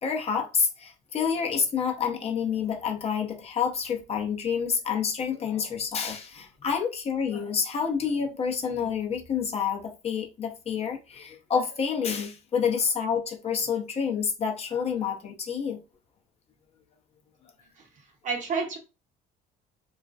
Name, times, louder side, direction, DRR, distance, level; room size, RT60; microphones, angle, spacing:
voice 1, 0.0-15.8, left 6 dB, 35° left, 0.6 m, -28 dB
voice 2, 17.8-18.8, right 4 dB, 45° right, 0.9 m, -32 dB
2.4 x 2.1 x 2.4 m
supercardioid pair, 100°, 18 cm